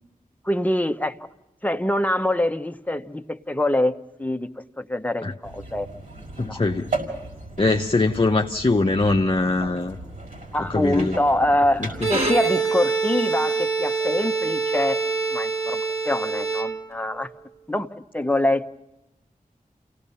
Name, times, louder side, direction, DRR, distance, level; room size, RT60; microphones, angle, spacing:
voice 1, 0.4-1.2 1.6-4.5 4.8-5.9 6.5-6.6 10.5-15.0 15.3-17.3 17.7-17.9 18.1-18.7, left 1 dB, 10° left, 7 dB, 1.1 m, -24 dB
sound 1, 5.4-12.4, right 2 dB, 60° right, 5.6 m, -36 dB
voice 2, 6.4-6.9 7.6-10.0 10.7-11.2 11.8-12.1, left 3 dB, 35° left, 2 dB, 0.9 m, -22 dB
Bowed string instrument, 11.9-17.2, right 4 dB, 45° right, 2.5 m, -25 dB
28.5 x 18.0 x 5.6 m, 0.94 s
cardioid pair, 45°, 15 cm